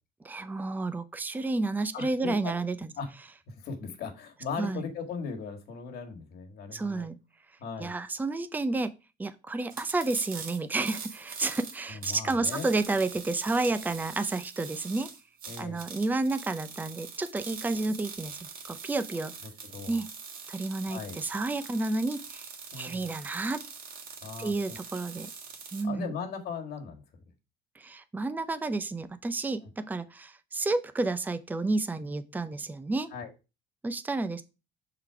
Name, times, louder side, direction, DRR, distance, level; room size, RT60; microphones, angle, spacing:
voice 1, 0.2-2.9 4.6-4.8 6.7-7.2 7.8-8.9 9.2-15.1 15.6-19.3 19.9-20.1 20.5-22.5 22.8-23.6 24.4-25.3 25.7-26.1 27.8-33.1 33.8-34.4, right 3 dB, 10° right, 12 dB, 0.5 m, -31 dB
voice 2, 1.9-2.6 2.9-3.1 3.5-7.1 7.6-7.9 11.9-12.7 15.5-15.8 19.4-20.0 20.9-21.2 22.7-23.1 24.2-24.8 25.8-27.0 29.6-29.7 33.1-33.3, left 5 dB, 70° left, 3 dB, 1.7 m, -38 dB
sound 1, 9.7-25.8, right 5 dB, 55° right, 1.7 m, -43 dB
6.4 x 3.8 x 4.6 m, 0.29 s
cardioid pair, 110°, 17 cm